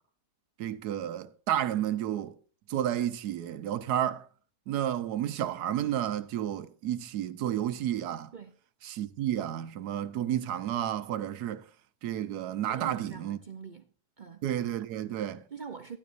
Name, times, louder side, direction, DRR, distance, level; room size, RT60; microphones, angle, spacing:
voice 1, 0.6-2.4 2.7-4.3 4.7-8.3 8.8-11.6 12.0-13.4 14.4-15.4, right 11 dB, 75° right, 1.3 m, -31 dB
voice 2, 12.7-13.9 14.2-14.5 15.5-16.0, right 6 dB, 60° right, 0.5 m, -43 dB
12.0 x 11.0 x 2.6 m
omnidirectional pair, 1.7 m